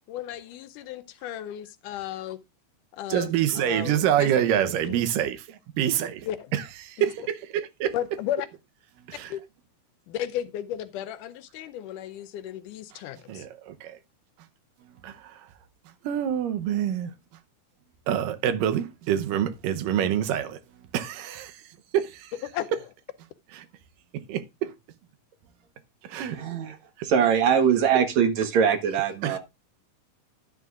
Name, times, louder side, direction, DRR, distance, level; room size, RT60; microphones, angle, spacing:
voice 1, 0.1-2.4 2.9-4.3 4.8-5.0 6.2-6.5 7.9-8.5 9.3-9.4 10.1-13.5 22.5-22.7, left 11 dB, 80° left, 2.2 m, -34 dB
voice 2, 3.1-6.3 6.5-7.9 9.1-9.3 12.9-13.0 13.3-14.0 15.0-15.5 16.0-17.1 18.1-20.6 20.9-21.6 21.9-22.3 23.5-23.7 24.1-24.7 26.0-26.4 27.0-27.1 29.2-29.4, right 10 dB, 85° right, 2.5 m, -27 dB
voice 3, 26.2-26.8 27.0-29.4, right 7 dB, 65° right, 2.3 m, -22 dB
11.5 x 11.0 x 2.4 m
omnidirectional pair, 3.8 m